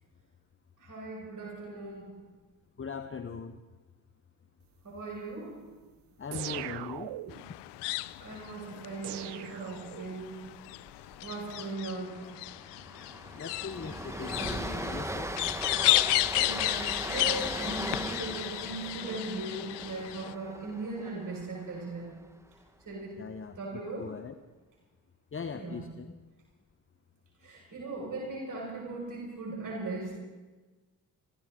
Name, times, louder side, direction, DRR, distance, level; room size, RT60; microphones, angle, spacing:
voice 1, 0.8-2.3 4.8-5.7 8.2-10.7 11.2-12.4 16.0-22.3 22.8-23.3 23.6-24.2 25.5-25.8 27.4-30.2, right 3 dB, 50° right, -3 dB, 5.8 m, -39 dB
voice 2, 2.8-3.6 6.2-7.2 13.3-15.4 23.2-23.6 24.0-24.3 25.3-26.2, left 5 dB, 30° left, 8 dB, 1.1 m, -40 dB
sound 1, 6.3-7.5 9.0-10.3, right 15 dB, 75° right, 0.7 m, -40 dB
sound 2, 7.3-20.3, left 20 dB, 85° left, 0.5 m, -33 dB
Train, 10.9-11.2 11.4-11.6 12.0-22.1, right 1 dB, 5° right, 1.4 m, -39 dB
26.0 x 14.0 x 3.8 m, 1.3 s
supercardioid pair, 55°, 40 cm